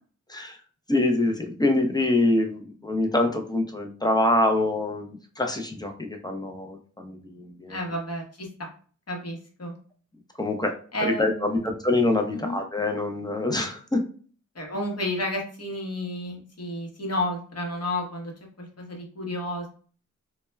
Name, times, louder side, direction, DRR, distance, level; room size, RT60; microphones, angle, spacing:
voice 1, 0.9-7.8 10.4-10.7 11.0-14.0, left 2 dB, 15° left, 3 dB, 0.5 m, -25 dB
voice 2, 7.7-8.7 9.1-9.7 10.9-11.7 12.3-12.6 14.5-18.3 18.6-19.7, left 1 dB, 50° left, 0 dB, 0.9 m, -31 dB
2.2 x 2.1 x 3.2 m, 0.42 s
wide cardioid pair, 45°, 31 cm